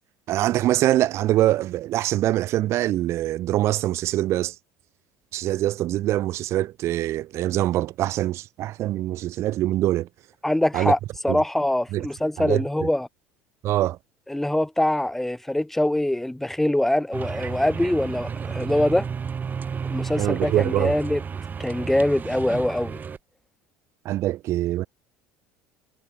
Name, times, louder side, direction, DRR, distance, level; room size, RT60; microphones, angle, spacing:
voice 1, 0.3-4.5 5.3-10.1 10.7-10.9 11.3-11.4 11.9-12.1 12.4-12.9 13.6-14.0 20.2-20.9 24.0-24.9, right 14 dB, 55° right, 1.5 m, -24 dB
voice 2, 10.4-11.0 11.2-13.1 14.3-19.1 19.8-21.2 21.6-23.0, left 1 dB, 5° left, 0.4 m, -23 dB
sound 1, 17.1-23.2, right 6 dB, 35° right, 5.6 m, -32 dB
hypercardioid pair, 80°, 5 cm